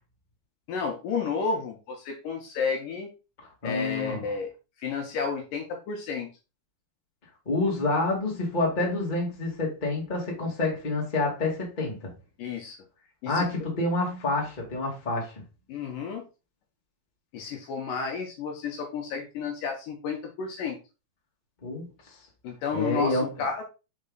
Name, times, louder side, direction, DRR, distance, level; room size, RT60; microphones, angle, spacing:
voice 1, 0.7-3.1 3.6-4.5 4.8-6.3 12.4-12.8 13.2-13.7 15.7-16.3 17.3-20.8 22.4-23.6, left 5 dB, 70° left, 2.2 m, -32 dB
voice 2, 3.6-4.2 7.4-12.1 13.2-15.3 21.6-22.1 22.7-23.3, left 2 dB, 20° left, 1.1 m, -28 dB
5.4 x 4.8 x 3.9 m
omnidirectional pair, 4.5 m